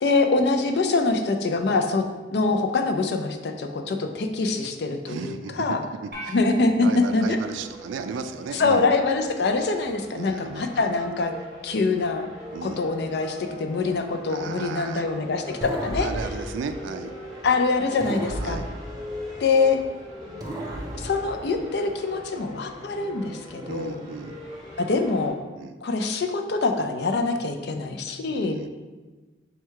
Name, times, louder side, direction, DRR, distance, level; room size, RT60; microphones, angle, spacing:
voice 1, 0.0-2.0 2.3-5.8 6.3-7.4 8.5-11.3 11.6-12.3 12.6-16.1 17.4-18.6 19.4-19.8 20.9-24.0 24.8-25.4 25.8-28.6, left 3 dB, 60° left, 5 dB, 0.4 m, -24 dB
voice 2, 5.1-5.5 6.0-6.4 6.8-8.9 10.1-11.0 12.5-12.8 14.3-15.1 16.0-17.2 18.4-18.7 23.7-24.4 25.6-25.8 28.3-28.7, right 5 dB, 90° right, 9 dB, 0.3 m, -35 dB
sound 1, 6.1-8.6, equal, 50° right, 1.0 m, -42 dB
sound 2, 7.0-25.3, left 1 dB, 5° left, 1.1 m, -41 dB
sound 3, 15.6-17.5 18.0-19.9 20.4-22.1, right 1 dB, 20° right, 0.5 m, -35 dB
4.5 x 2.2 x 4.5 m, 1.3 s
head